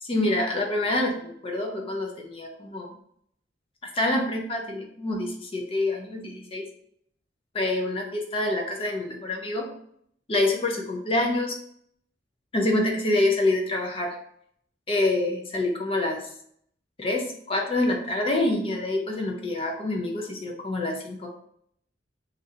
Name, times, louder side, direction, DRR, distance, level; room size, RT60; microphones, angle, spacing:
voice 1, 0.0-3.0 3.8-6.7 7.5-9.7 10.3-11.6 12.5-14.2 14.9-16.3 17.0-21.3, left 2 dB, 30° left, 1 dB, 0.5 m, -26 dB
2.6 x 2.5 x 4.2 m, 0.67 s
head